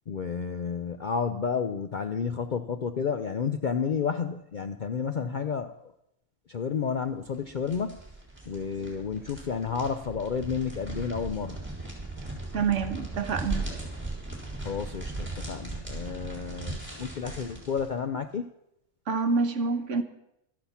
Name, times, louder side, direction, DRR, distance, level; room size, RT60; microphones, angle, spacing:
voice 1, 0.1-5.9 6.5-8.1 8.5-11.6 14.6-18.5, left 6 dB, 55° left, 0.5 m, -31 dB
sound 1, 7.3-17.9, right 2 dB, 10° right, 3.7 m, -38 dB
voice 2, 12.5-13.7 19.1-20.0, right 5 dB, 60° right, 1.3 m, -27 dB
12.5 x 9.9 x 7.1 m
omnidirectional pair, 1.5 m